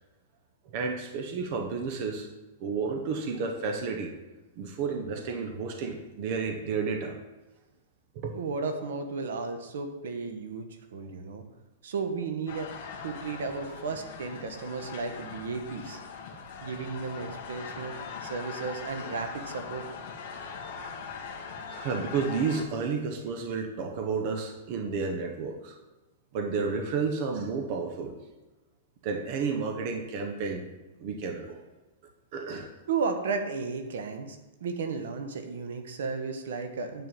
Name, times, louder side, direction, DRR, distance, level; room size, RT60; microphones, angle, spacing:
voice 1, 0.7-2.3 2.6-4.1 4.6-7.2 8.1-8.3 11.0-11.1 21.7-25.8 26.3-28.1 29.0-30.6 31.0-31.6 32.3-32.7, right 5 dB, 35° right, 4 dB, 0.8 m, -31 dB
voice 2, 8.3-11.4 11.8-12.7 13.0-16.0 16.6-17.9 18.2-19.8 32.9-37.1, right 4 dB, 75° right, 6 dB, 1.2 m, -34 dB
sound 1, 12.5-22.6, left 5 dB, 40° left, 1.4 m, -41 dB
9.4 x 4.4 x 7.0 m, 1.1 s
supercardioid pair, 175°, 0 cm